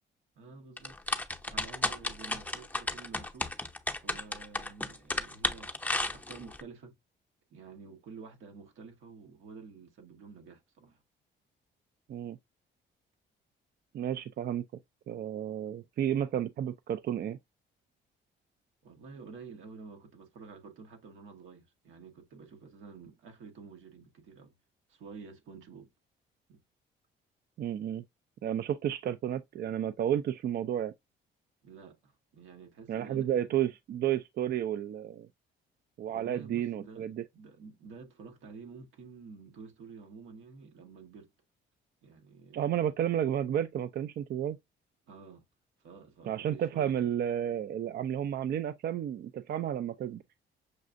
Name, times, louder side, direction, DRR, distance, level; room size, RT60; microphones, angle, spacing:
voice 1, 0.4-0.9 1.5-3.5 4.0-5.8 6.1-6.9 7.5-11.0 18.8-24.5 24.9-25.9 26.5-26.6 31.6-33.6 36.1-41.3 42.0-42.9 45.1-45.4 45.8-47.1, right 5 dB, 85° right, 1.2 m, -50 dB
sound 1, 0.8-6.6, left 2 dB, 10° left, 0.6 m, -33 dB
voice 2, 13.9-14.6 15.1-17.4 27.6-28.0 28.4-30.9 32.9-35.3 36.0-37.2 42.5-44.6 46.3-50.2, right 10 dB, 55° right, 0.4 m, -32 dB
6.4 x 2.4 x 2.5 m
cardioid pair, 90°, 20 cm